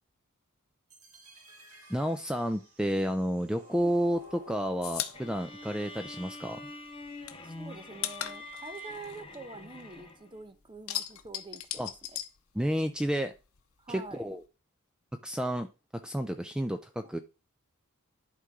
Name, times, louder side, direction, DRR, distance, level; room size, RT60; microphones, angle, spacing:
sound 1, 0.9-6.9, left 1 dB, 85° right, 2.0 m, -55 dB
voice 1, 1.9-6.6 11.8-11.9 12.5-13.3 13.9-14.4 15.2-15.7 16.0-17.2, equal, 5° right, 0.4 m, -31 dB
sound 2, 3.8-6.6 6.9-10.2 10.5-13.1 13.3-14.4, left 11 dB, 80° left, 0.8 m, -39 dB
sound 3, 5.1-10.4, left 2 dB, 25° left, 1.2 m, -45 dB
voice 2, 7.4-11.9 13.8-14.2 17.0-17.1, right 3 dB, 20° right, 0.8 m, -46 dB
11.0 x 3.8 x 4.8 m
head